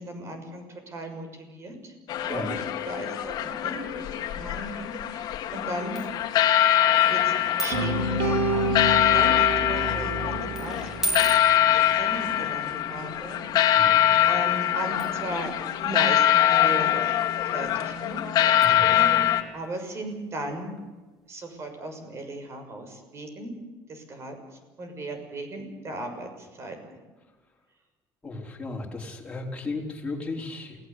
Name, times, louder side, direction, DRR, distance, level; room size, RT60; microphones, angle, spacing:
voice 1, 0.0-1.9 2.2-6.0 7.1-7.3 7.6-10.8 11.1-13.4 13.7-15.5 15.8-17.1 17.4-20.8 21.3-23.5 23.9-24.4 24.8-27.0, right 1 dB, 35° right, 6 dB, 6.4 m, -37 dB
sound 1, 2.1-19.4, left 11 dB, 55° left, 2.5 m, -23 dB
sound 2, 4.4-4.9 5.9-8.0 8.3-8.7 9.4-9.7 10.5-12.5 13.5-13.6 15.0-20.5 20.8-20.9 21.2-21.3, right 1 dB, 5° right, 3.7 m, -38 dB
sound 3, 7.7-11.8, right 1 dB, 75° right, 5.4 m, -28 dB
voice 2, 13.7-14.0 18.6-18.9 28.2-30.8, left 3 dB, 15° left, -1 dB, 4.8 m, -35 dB
28.5 x 18.5 x 8.4 m, 1.2 s
cardioid pair, 145°, 8 cm